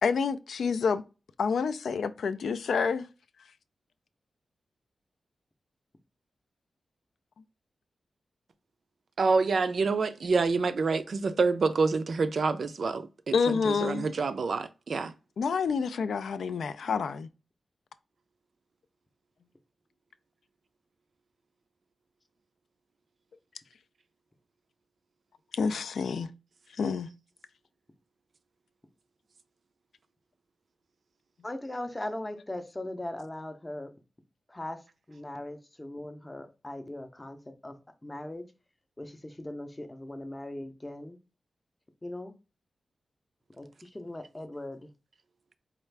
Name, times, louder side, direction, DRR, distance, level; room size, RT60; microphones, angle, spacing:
voice 1, 0.0-1.0 1.4-3.1 13.3-14.0 15.4-17.3 25.5-26.3 26.8-27.1, left 5 dB, 85° left, 0.3 m, -28 dB
voice 2, 9.2-15.1, right 4 dB, 55° right, 0.4 m, -27 dB
voice 3, 31.4-33.9 34.5-34.8 35.1-37.4 37.6-38.4 39.0-41.2 42.0-42.3 43.6-44.9, left 1 dB, 15° left, 0.5 m, -39 dB
4.3 x 2.4 x 3.2 m
wide cardioid pair, 135°, 0 cm